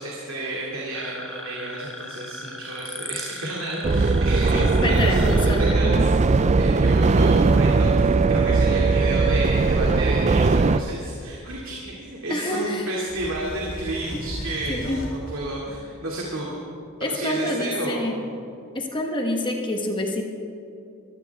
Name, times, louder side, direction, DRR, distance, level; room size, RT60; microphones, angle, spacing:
voice 1, 0.0-16.6 17.0-18.2, right 1 dB, 65° right, -4 dB, 2.5 m, -31 dB
sound 1, 0.9-5.7, left 1 dB, ahead, 1.1 m, -38 dB
sound 2, 3.8-10.8, right 3 dB, 30° right, 0.4 m, -19 dB
voice 2, 4.5-5.9 12.3-12.9 14.1-14.2 14.7-15.0 17.0-18.3 18.7-20.2, left 1 dB, 25° left, 2 dB, 1.3 m, -27 dB
sound 3, 7.0-11.1 13.1-15.4, equal, 65° left, 2.2 m, -36 dB
22.5 x 15.5 x 3.5 m, 2.7 s
head